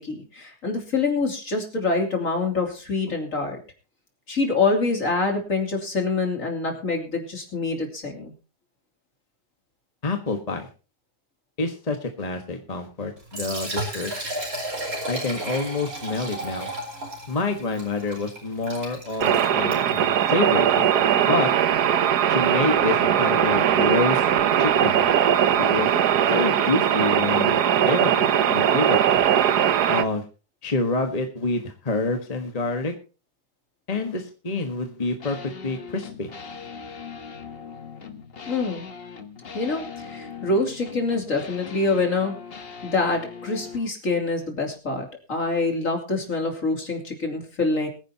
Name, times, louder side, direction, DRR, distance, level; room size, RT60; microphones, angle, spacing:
voice 1, 0.0-3.6 4.3-8.3 38.5-38.8 39.5-42.4 42.8-47.9, left 3 dB, 55° left, 2 dB, 3.4 m, -25 dB
voice 2, 10.0-10.7 11.6-14.1 15.1-16.7 17.3-20.9 21.2-21.5 22.3-24.2 24.6-25.1 25.6-25.9 26.3-29.2 29.9-30.2 30.6-32.9 33.9-35.4 35.6-36.3, left 3 dB, 25° left, 5 dB, 1.5 m, -27 dB
Liquid, 13.2-20.1, right 1 dB, 65° right, 4.9 m, -33 dB
sound 1, 19.2-30.0, right 9 dB, 90° right, 1.4 m, -20 dB
sound 2, 35.2-43.9, left 5 dB, 40° left, 1.4 m, -40 dB
22.5 x 10.5 x 2.9 m, 0.33 s
omnidirectional pair, 1.6 m